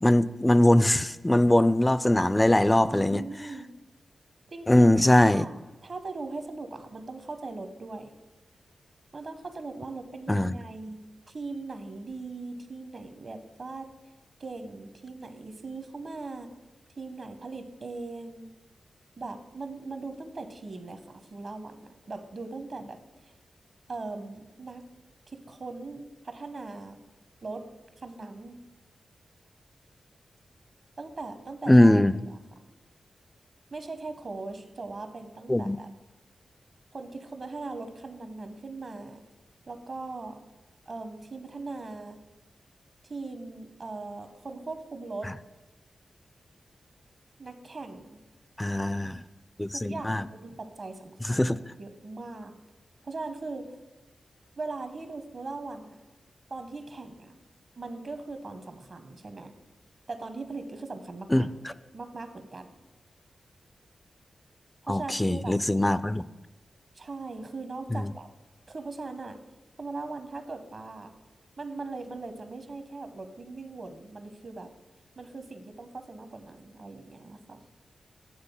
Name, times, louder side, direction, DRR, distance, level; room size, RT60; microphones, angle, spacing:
voice 1, 0.0-3.2 4.7-5.4 10.3-10.6 31.7-32.1 35.5-35.8 45.2-45.3 48.6-49.2 49.6-50.3 51.3-51.6 61.3-61.7 64.9-66.2 67.9-68.1, left 1 dB, 15° left, 16 dB, 0.3 m, -21 dB
voice 2, 2.9-3.7 4.5-5.6 5.8-8.1 9.1-13.9 14.4-16.5 17.0-18.4 19.2-23.3 23.9-24.8 25.3-27.0 27.4-27.6 28.0-28.6 31.0-32.4 33.7-35.9 36.9-39.2 39.7-40.4 40.9-42.2 43.1-45.3 47.4-48.2 49.7-52.5 53.0-53.7 54.6-56.0 56.5-57.4 57.8-59.5 60.1-61.5 61.9-62.8 64.8-65.6 66.9-68.3 68.7-69.4 69.8-71.1 71.6-74.7 75.2-77.6, right 3 dB, 55° right, 8 dB, 0.9 m, -40 dB
9.0 x 3.8 x 7.0 m, 1.1 s
cardioid pair, 70°, 0 cm